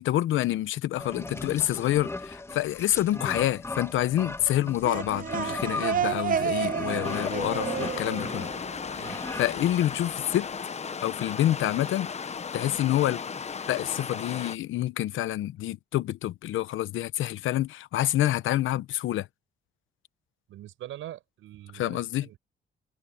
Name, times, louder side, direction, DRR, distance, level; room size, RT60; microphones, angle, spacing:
voice 1, 0.0-8.5 9.4-10.5 11.0-12.1 12.5-13.2 13.7-19.3 21.7-22.3, left 13 dB, 80° left, 1.0 m, -27 dB
sound 1, 1.0-10.4, left 2 dB, 15° left, 1.7 m, -38 dB
sound 2, 4.6-9.4, right 7 dB, 45° right, 0.8 m, -31 dB
sound 3, 7.0-14.6, left 6 dB, 35° left, 1.0 m, -36 dB
voice 2, 20.5-22.4, right 13 dB, 85° right, 6.3 m, -43 dB
cardioid pair, 90°, 20 cm